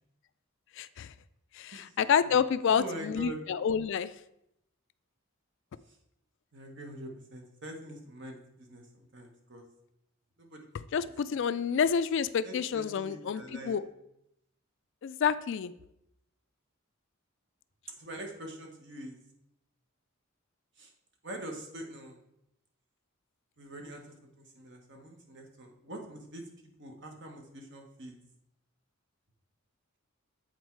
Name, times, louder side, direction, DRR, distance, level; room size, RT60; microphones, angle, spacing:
voice 1, 0.8-1.1 1.5-4.1 10.9-13.8 15.0-15.7, left 7 dB, 60° left, 15 dB, 0.3 m, -29 dB
voice 2, 1.7-2.3 2.6-3.4 5.9-6.0 6.5-9.6 10.4-11.4 12.4-13.8 18.0-19.2 20.8-20.9 21.2-22.2 23.6-24.1 24.4-26.4 26.8-28.1, right 1 dB, 60° right, 2 dB, 1.3 m, -44 dB
8.0 x 4.4 x 4.5 m, 0.80 s
head